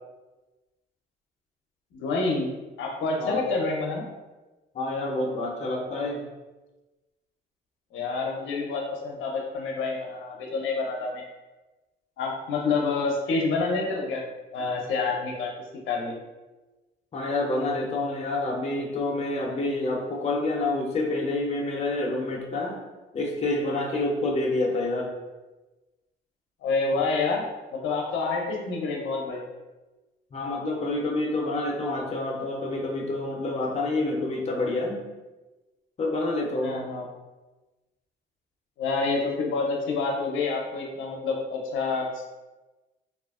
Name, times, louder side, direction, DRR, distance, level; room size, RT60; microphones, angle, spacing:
voice 1, 1.9-2.5 2.8-4.0 7.9-11.2 12.2-14.2 14.5-15.5 15.9-16.1 26.6-27.4 27.7-29.4 36.6-37.1 38.8-42.3, left 3 dB, 80° left, 0 dB, 0.5 m, -28 dB
voice 2, 4.7-6.2 17.1-22.8 23.1-25.1 30.3-35.0 36.0-36.8, left 2 dB, 35° left, -1 dB, 0.5 m, -28 dB
2.7 x 2.3 x 2.4 m, 1.1 s
cardioid pair, 90°, 20 cm